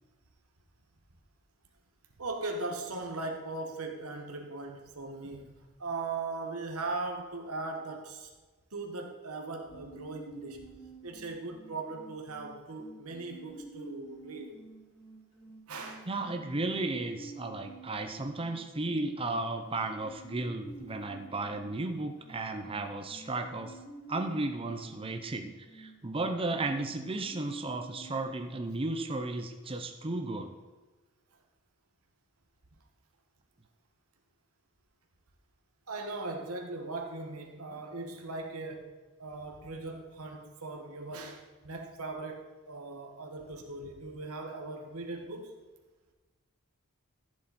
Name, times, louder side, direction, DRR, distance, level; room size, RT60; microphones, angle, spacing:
voice 1, 2.2-8.3 8.7-10.6 11.0-14.5 15.7-16.1 35.9-38.9 39.2-45.5, right 3 dB, 70° right, 3 dB, 1.6 m, -39 dB
sound 1, 9.7-28.2, right 3 dB, 25° left, 4.1 m, -51 dB
voice 2, 16.1-23.8 24.1-30.6, right 2 dB, 25° right, 6 dB, 0.7 m, -34 dB
14.5 x 7.7 x 4.3 m, 1.3 s
head